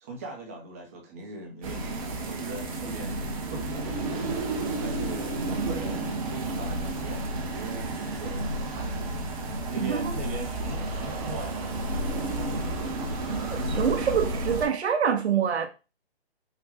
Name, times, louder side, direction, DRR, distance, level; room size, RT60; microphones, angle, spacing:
voice 1, 0.0-3.2 3.5-4.3 4.8-9.2 9.7-11.6, right 3 dB, 15° right, 0.4 m, -40 dB
sound 1, 1.6-14.7, right 2 dB, 35° right, 0.8 m, -31 dB
voice 2, 9.8-10.2 13.7-15.7, right 7 dB, 80° right, 0.8 m, -25 dB
4.8 x 2.1 x 3.4 m
hypercardioid pair, 155°, 32 cm